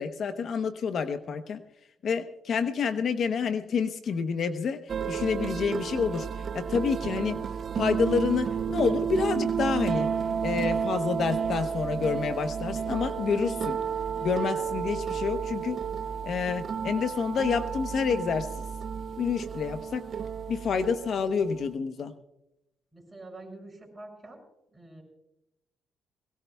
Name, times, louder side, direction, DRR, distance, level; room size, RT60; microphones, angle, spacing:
voice 1, 0.0-1.6 2.0-4.8 5.1-6.3 6.5-7.4 7.8-10.1 10.4-13.8 14.2-15.8 16.2-18.5 19.2-20.0 20.5-22.1, left 6 dB, 60° left, 9 dB, 0.8 m, -28 dB
sound 1, 4.9-21.7, right 7 dB, 50° right, 0.5 m, -31 dB
voice 2, 22.9-24.4 24.7-25.0, right 2 dB, 15° right, 2 dB, 6.5 m, -46 dB
22.0 x 18.0 x 2.3 m, 0.88 s
cardioid pair, 90°, 0 cm